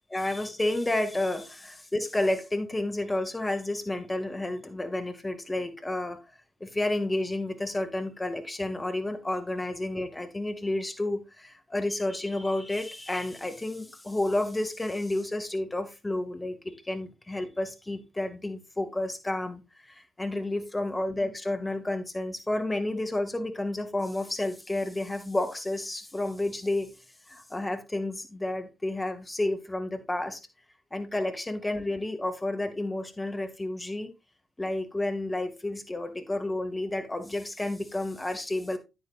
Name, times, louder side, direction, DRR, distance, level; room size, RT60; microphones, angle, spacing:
voice 1, 0.1-6.2 6.6-26.9 27.3-30.4 30.9-34.1 34.6-38.8, left 1 dB, 20° left, 2.0 m, -31 dB
9.4 x 9.2 x 2.5 m
figure-of-eight pair, 40°, 0 cm